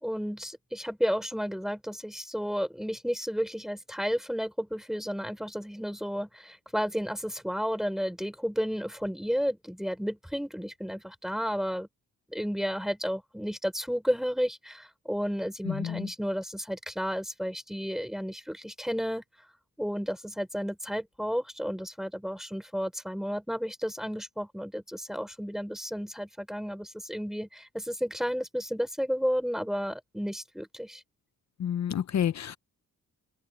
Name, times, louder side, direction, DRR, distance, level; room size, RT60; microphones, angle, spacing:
voice 1, 0.0-11.9 12.3-19.2 19.8-31.0, equal, ahead, 4.8 m, -32 dB
voice 2, 31.6-32.6, left 9 dB, 55° left, 0.7 m, -29 dB
wide cardioid pair, 175°, 33 cm